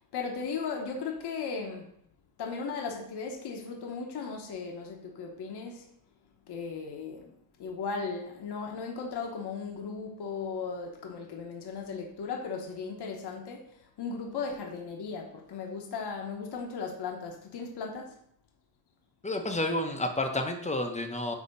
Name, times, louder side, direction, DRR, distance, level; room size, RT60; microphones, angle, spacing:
voice 1, 0.1-1.9 2.4-5.8 6.5-7.3 7.6-13.7 14.0-18.2, left 5 dB, 55° left, 1.0 m, -36 dB
voice 2, 19.2-21.3, left 1 dB, 15° left, 0.6 m, -30 dB
8.2 x 2.8 x 5.3 m
wide cardioid pair, 175°, 47 cm